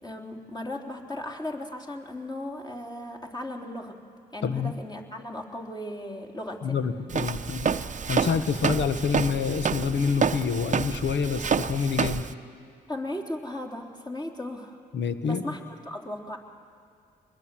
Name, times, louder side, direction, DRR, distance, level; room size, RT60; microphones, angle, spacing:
voice 1, 0.0-4.0 4.3-6.8 12.9-14.8 15.2-16.4, left 1 dB, 20° left, 2 dB, 3.5 m, -36 dB
voice 2, 4.4-4.7 6.6-7.7 8.1-12.3 14.9-15.5, left 6 dB, 65° left, 9 dB, 1.5 m, -27 dB
Walk footsteps, 7.1-12.3, right 6 dB, 40° right, 0.8 m, -28 dB
24.5 x 21.0 x 7.7 m, 2.2 s
supercardioid pair, 55°, 20 cm